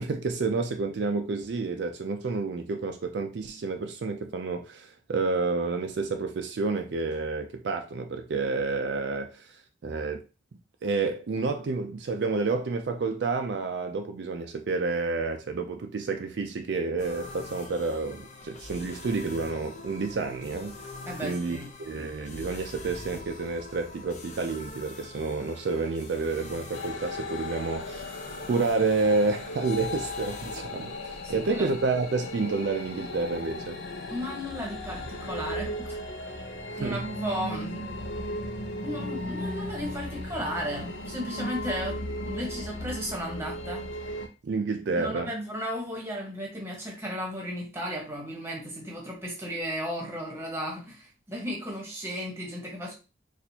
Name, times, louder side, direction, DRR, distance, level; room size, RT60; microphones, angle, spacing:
voice 1, 0.0-10.2 10.8-20.9 21.2-28.1 28.5-33.8 36.7-37.0 44.4-45.3, right 3 dB, 65° right, 0.4 m, -29 dB
sound 1, 17.0-30.7, left 3 dB, 40° left, 0.6 m, -44 dB
voice 2, 21.1-21.7 31.2-31.7 34.1-36.0 36.3-36.5 36.8-37.9 38.8-42.0 42.2-44.2 44.9-52.9, equal, 15° right, 1.0 m, -35 dB
sound 2, 26.7-44.3, left 1 dB, 85° left, 0.6 m, -36 dB
4.2 x 2.5 x 2.8 m
head